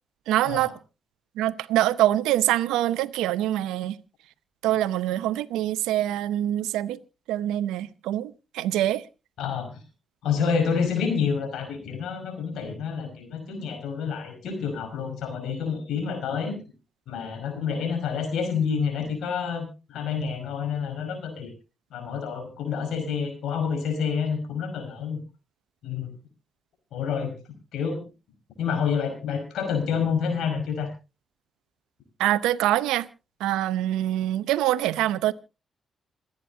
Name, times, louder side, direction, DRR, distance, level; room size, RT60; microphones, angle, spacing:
voice 1, 0.3-0.7 1.4-4.0 4.6-7.0 7.3-9.1 32.2-33.1 33.4-35.3, right 13 dB, 80° right, 0.7 m, -24 dB
voice 2, 9.4-9.8 10.2-16.5 17.1-19.7 19.9-21.5 21.9-25.2 25.8-26.1 26.9-27.4 27.7-28.0 28.6-30.9, left 6 dB, 75° left, 5.4 m, -28 dB
27.5 x 9.7 x 2.7 m
hypercardioid pair, 45°, 0 cm